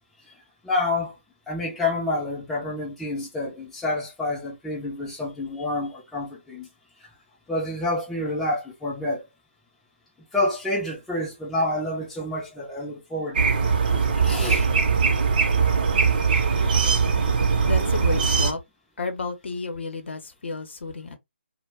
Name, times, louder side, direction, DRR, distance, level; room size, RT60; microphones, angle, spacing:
voice 1, 0.6-1.1 1.5-6.7 7.5-9.2 10.3-13.6 14.1-14.7, left 2 dB, 5° left, 0.4 m, -28 dB
sound 1, 13.3-18.5, right 5 dB, 45° right, 0.6 m, -21 dB
voice 2, 17.6-18.6 19.0-21.2, left 3 dB, 65° left, 0.7 m, -31 dB
2.2 x 2.0 x 3.2 m
figure-of-eight pair, 155°, 7 cm